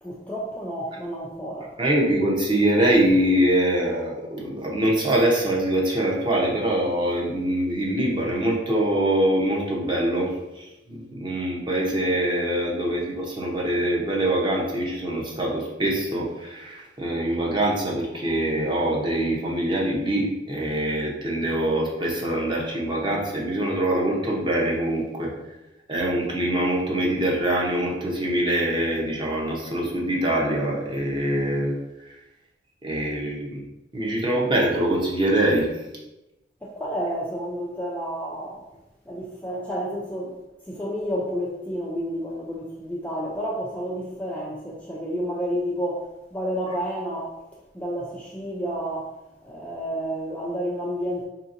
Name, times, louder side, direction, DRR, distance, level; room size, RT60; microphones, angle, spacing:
voice 1, 0.0-1.8 36.6-38.6 39.1-40.4 40.6-47.4 47.7-49.2 49.4-51.3, equal, 10° left, 0.3 m, -30 dB
voice 2, 1.8-25.3 25.9-31.7 32.8-33.6 33.9-35.7, right 1 dB, 25° right, 0.7 m, -24 dB
3.5 x 2.7 x 2.5 m
head